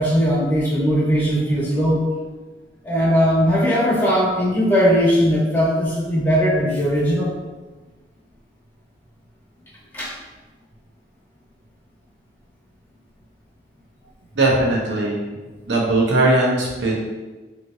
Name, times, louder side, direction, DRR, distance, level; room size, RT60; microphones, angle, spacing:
voice 1, 0.0-2.0 2.8-7.4 9.9-10.1, equal, 10° left, -7 dB, 1.0 m, -19 dB
voice 2, 14.4-15.2 15.7-17.0, right 2 dB, 75° right, -2 dB, 0.9 m, -19 dB
4.0 x 3.1 x 2.6 m, 1.2 s
head